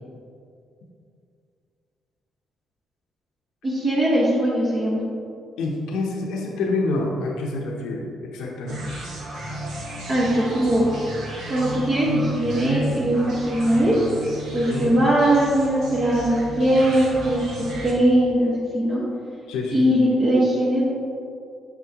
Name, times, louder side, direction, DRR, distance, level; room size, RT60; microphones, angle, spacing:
voice 1, 3.6-5.0 10.1-11.1 11.5-13.9 14.5-17.4 17.8-19.0 19.7-20.8, right 1 dB, 40° right, -8 dB, 1.6 m, -20 dB
voice 2, 5.6-9.1 14.7-14.9 19.5-19.8, left 2 dB, 90° left, -1 dB, 0.8 m, -27 dB
sound 1, 8.7-17.9, right 1 dB, 75° right, 1.4 m, -32 dB
7.6 x 6.0 x 3.0 m, 2.5 s
cardioid pair, 90°, 0 cm